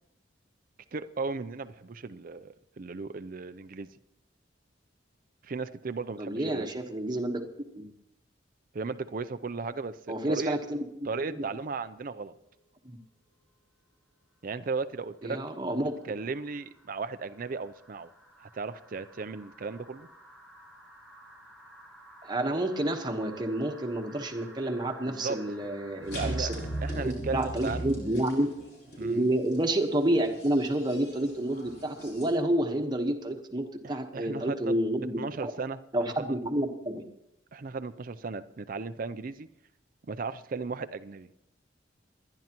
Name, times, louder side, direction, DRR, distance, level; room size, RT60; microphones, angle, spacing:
voice 1, 0.9-3.9 5.4-6.7 8.7-10.6 11.1-12.4 14.4-15.4 16.0-18.1 18.4-20.1 25.0-25.4 26.1-26.5 26.8-27.9 29.0-29.3 33.8-34.7 35.2-35.8 36.1-36.3 37.5-39.5 40.1-41.3, right 4 dB, 45° right, 0.5 m, -36 dB
voice 2, 6.2-7.5 7.7-7.9 10.1-11.1 11.4-11.5 12.8-13.0 15.2-15.9 22.2-26.5 27.0-28.5 29.0-35.5 35.9-37.0, right 1 dB, 20° right, 1.2 m, -29 dB
sound 1, 12.3-12.9 14.5-26.9, right 1 dB, 5° left, 4.4 m, -54 dB
sound 2, 26.0-32.3, right 1 dB, 60° left, 5.0 m, -39 dB
27.5 x 10.5 x 3.0 m
head